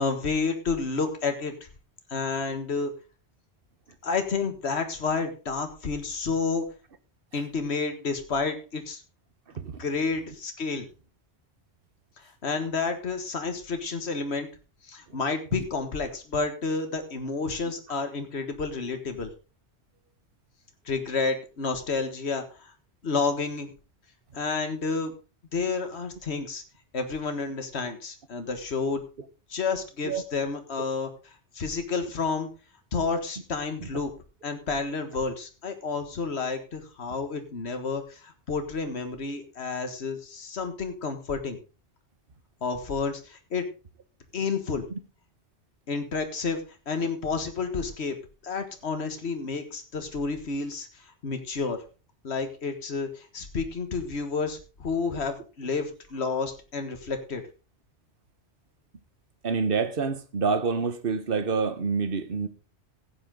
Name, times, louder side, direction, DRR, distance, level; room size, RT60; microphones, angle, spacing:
voice 1, 0.0-1.5 2.1-2.9 4.0-6.6 7.3-9.0 9.8-10.9 12.4-14.5 14.9-19.3 20.8-22.7 23.0-23.7 24.3-25.1 25.5-26.6 26.9-29.0 29.5-31.1 31.5-32.5 32.9-34.1 34.4-41.6 42.6-43.7 44.3-44.9 45.9-48.2 48.4-50.9 51.2-51.8 52.2-57.4, left 4 dB, 70° left, 1.8 m, -30 dB
voice 2, 59.4-62.5, right 5 dB, 55° right, 1.3 m, -27 dB
15.0 x 8.9 x 3.8 m
omnidirectional pair, 1.2 m